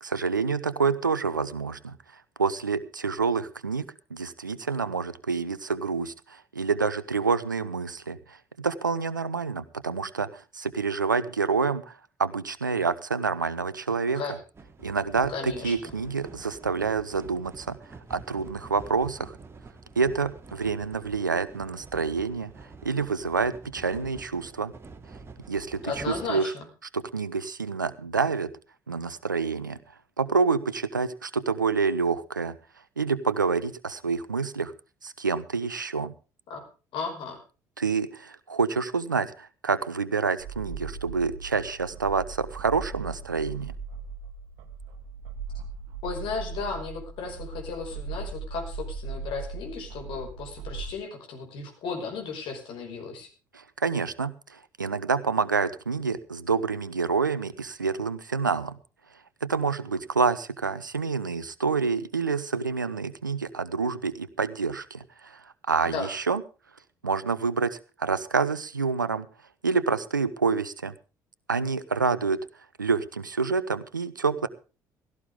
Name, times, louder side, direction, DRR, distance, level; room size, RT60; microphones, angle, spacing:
voice 1, 0.0-1.9 2.4-3.9 4.1-11.9 12.2-14.2 14.8-17.8 18.1-19.4 20.0-22.5 22.8-24.7 25.5-26.5 26.9-28.5 28.9-29.8 30.2-32.5 33.0-34.7 35.0-36.1 37.8-43.7 53.6-58.8 59.4-65.4 65.7-66.4 67.0-69.3 69.6-70.9 71.5-72.4 72.8-74.5, right 5 dB, 85° right, 16 dB, 0.6 m, -27 dB
sound 1, 14.5-26.3, right 4 dB, 25° right, 2.6 m, -47 dB
voice 2, 15.3-15.9 25.8-26.7 36.5-36.6 36.9-37.4 46.0-53.3 65.8-66.1, left 5 dB, 55° left, 3 dB, 5.5 m, -35 dB
sound 2, 40.4-50.9, right 5 dB, 65° right, 1.5 m, -38 dB
16.5 x 15.0 x 3.6 m, 0.34 s
figure-of-eight pair, 55°, 10 cm